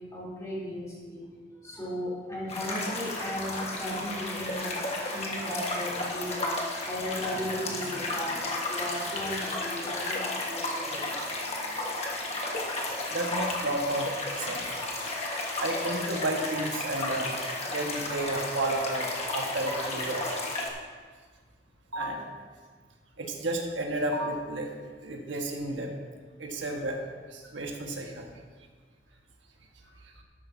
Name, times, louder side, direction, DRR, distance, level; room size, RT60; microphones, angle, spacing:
voice 1, 0.1-1.2 1.6-4.8 5.1-11.1, left 1 dB, 15° left, -7 dB, 3.3 m, -36 dB
sound 1, 2.5-20.7, left 2 dB, 35° left, 1.5 m, -33 dB
voice 2, 13.1-14.7 15.6-17.3 17.7-20.4 21.9-22.2 23.2-24.7 25.0-25.9 26.4-27.0 27.3-28.3, right 1 dB, 90° right, 1 dB, 1.5 m, -32 dB
13.0 x 12.0 x 2.8 m, 1.5 s
head